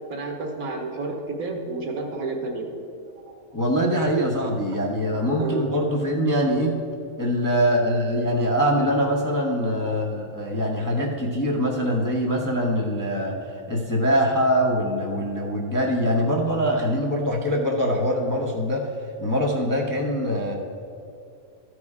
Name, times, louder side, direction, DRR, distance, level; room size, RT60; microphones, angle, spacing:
voice 1, 0.1-2.7 3.2-3.4 5.4-5.8 9.9-10.0, right 3 dB, 75° right, 2 dB, 1.6 m, -30 dB
voice 2, 3.5-6.8 7.2-13.4 13.7-18.9 19.2-20.5, equal, 20° left, -1 dB, 0.7 m, -23 dB
13.0 x 4.8 x 4.8 m, 2.5 s
omnidirectional pair, 1.5 m